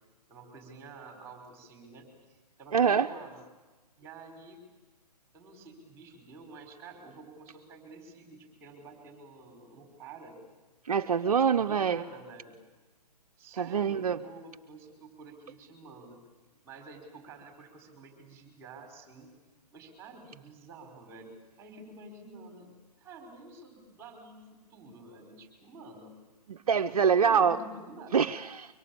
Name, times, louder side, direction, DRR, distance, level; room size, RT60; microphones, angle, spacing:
voice 1, 0.3-3.4 4.0-4.6 5.3-10.4 11.4-12.5 13.4-16.2 16.6-19.3 19.7-22.7 23.0-26.1 27.2-28.4, right 3 dB, 15° right, 3 dB, 4.9 m, -49 dB
voice 2, 2.7-3.1 10.9-12.0 13.6-14.2 26.5-27.6 28.1-28.7, right 7 dB, 60° right, 7 dB, 0.8 m, -25 dB
24.0 x 23.5 x 8.7 m, 1.2 s
figure-of-eight pair, 135°, 21 cm